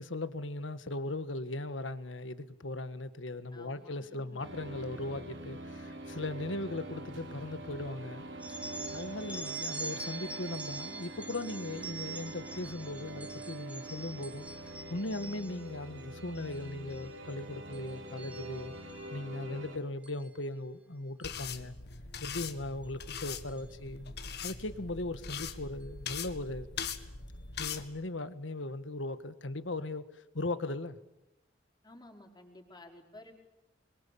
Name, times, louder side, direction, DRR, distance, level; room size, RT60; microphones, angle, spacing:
voice 1, 0.0-8.2 8.9-18.7 19.1-21.7 22.2-24.1 24.4-26.7 27.6-31.0, left 2 dB, 85° left, 12 dB, 1.6 m, -38 dB
voice 2, 3.5-4.5 31.8-33.3, left 1 dB, 20° left, 1 dB, 5.1 m, -53 dB
sound 1, 4.4-19.8, right 1 dB, 85° right, 4.0 m, -44 dB
sound 2, 8.4-15.7 16.2-16.6 16.9-17.3 17.7-19.1 20.0-20.3 21.2-21.4 22.3-22.4 22.8-22.9 23.5-23.7, right 3 dB, 5° right, 2.3 m, -44 dB
sound 3, 21.2-27.8, left 6 dB, 60° left, 1.8 m, -41 dB
27.5 x 23.0 x 8.6 m, 0.91 s
head